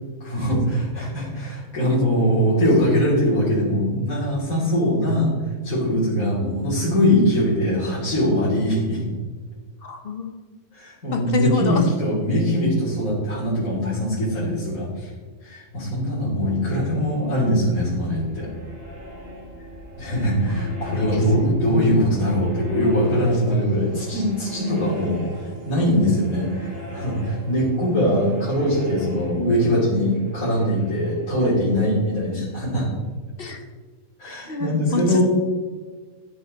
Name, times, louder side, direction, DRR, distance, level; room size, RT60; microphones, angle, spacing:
voice 1, 0.2-5.3 5.6-9.1 10.7-15.1 15.4-18.5 20.0-32.9 34.2-35.3, equal, 75° left, -9 dB, 3.1 m, -22 dB
voice 2, 9.8-10.3 11.1-11.8 20.5-22.1 33.4-33.6 34.5-35.3, left 5 dB, 45° left, 5 dB, 1.0 m, -28 dB
sound 1, 16.4-33.0, equal, 40° right, 3.7 m, -41 dB
11.0 x 7.5 x 4.0 m, 1.4 s
omnidirectional pair, 1.5 m